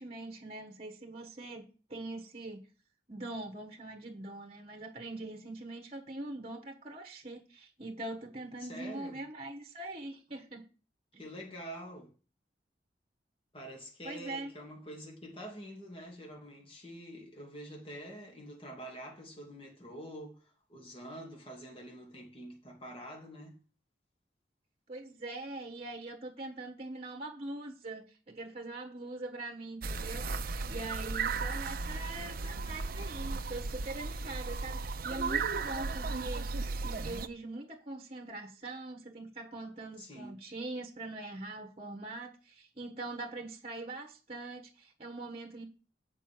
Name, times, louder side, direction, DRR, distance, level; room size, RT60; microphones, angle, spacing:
voice 1, 0.0-2.6 3.1-10.7 11.1-11.2 14.0-14.5 24.9-45.6, right 2 dB, 35° right, 1.2 m, -42 dB
voice 2, 8.6-9.2 11.2-12.1 13.5-23.5 40.0-40.4, equal, 30° left, 2.6 m, -46 dB
sound 1, 29.8-37.3, right 4 dB, 55° right, 0.6 m, -35 dB
8.2 x 5.3 x 7.6 m
head